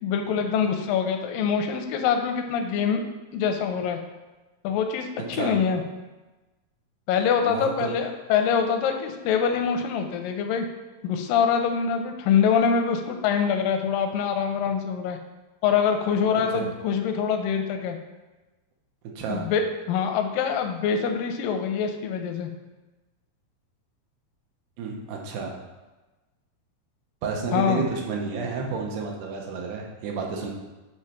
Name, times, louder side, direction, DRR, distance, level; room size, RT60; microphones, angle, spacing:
voice 1, 0.0-3.0 3.3-4.0 4.6-5.8 7.1-10.7 11.0-15.2 15.6-18.0 19.3-19.6 19.9-22.5 27.5-27.8, left 7 dB, 85° left, 5 dB, 2.0 m, -24 dB
voice 2, 7.4-7.9 16.5-16.7 19.2-19.4 24.8-25.5 27.2-30.5, right 5 dB, 90° right, 0 dB, 3.0 m, -30 dB
9.0 x 3.1 x 5.7 m, 1.2 s
omnidirectional pair, 4.6 m